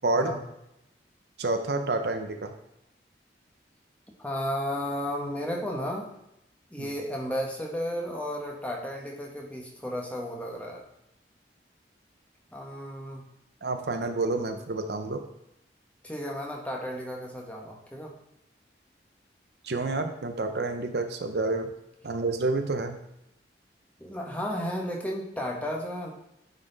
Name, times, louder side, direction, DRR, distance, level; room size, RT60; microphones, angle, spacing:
voice 1, 0.0-0.4 1.4-2.5 6.8-6.9 13.6-15.2 19.6-21.7 22.0-23.0, right 2 dB, 65° right, 6 dB, 0.7 m, -29 dB
voice 2, 4.2-6.1 6.7-10.8 12.5-13.3 16.0-18.1 24.0-26.1, equal, 10° left, -1 dB, 1.1 m, -33 dB
9.5 x 4.2 x 3.9 m, 0.84 s
head